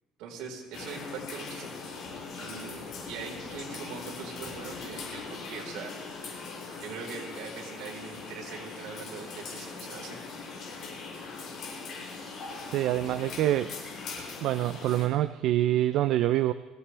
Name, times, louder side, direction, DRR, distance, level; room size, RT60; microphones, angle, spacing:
voice 1, 0.2-1.8 2.3-5.9 6.8-10.2, right 5 dB, 80° right, -1 dB, 4.5 m, -41 dB
sound 1, 0.7-15.1, left 4 dB, 50° left, 6.5 m, -41 dB
voice 2, 12.7-13.7 14.4-16.5, right 13 dB, 65° right, 11 dB, 0.5 m, -26 dB
23.5 x 17.5 x 3.4 m, 1.3 s
cardioid pair, 150°, 0 cm